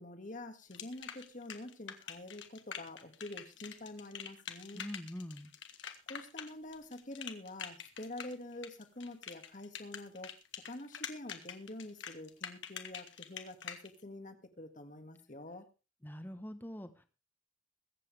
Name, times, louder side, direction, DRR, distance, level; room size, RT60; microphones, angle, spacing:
voice 1, 0.0-4.8 6.1-10.3 10.6-15.7, left 1 dB, 40° left, 7 dB, 1.8 m, -47 dB
sound 1, 0.7-13.9, left 8 dB, 70° left, 1.8 m, -45 dB
voice 2, 4.7-5.5 16.0-17.1, equal, 10° left, 9 dB, 1.2 m, -44 dB
22.5 x 8.4 x 3.4 m, 0.32 s
head